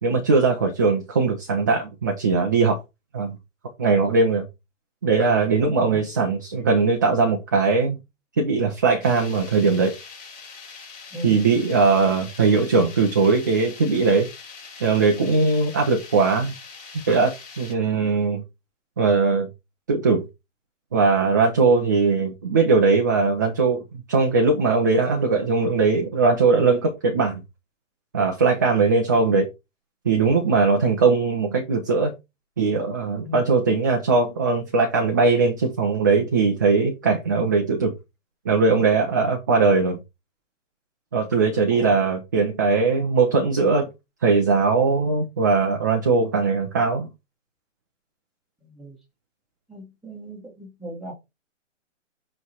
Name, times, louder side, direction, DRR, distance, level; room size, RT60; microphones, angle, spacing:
voice 1, 0.0-2.8 3.1-3.4 3.8-4.5 5.0-8.0 8.4-9.9 11.2-14.3 14.8-16.5 17.1-18.4 19.0-19.5 19.9-20.2 20.9-23.8 24.1-27.4 28.1-29.5 30.1-32.1 32.6-37.9 38.5-40.0 41.1-43.9 44.2-47.1, right 4 dB, 15° right, 0.4 m, -20 dB
sound 1, 9.0-17.7, left 5 dB, 25° left, 4.6 m, -43 dB
voice 2, 49.7-51.1, left 1 dB, ahead, 1.3 m, -37 dB
7.9 x 3.2 x 4.2 m
hypercardioid pair, 145°, 38 cm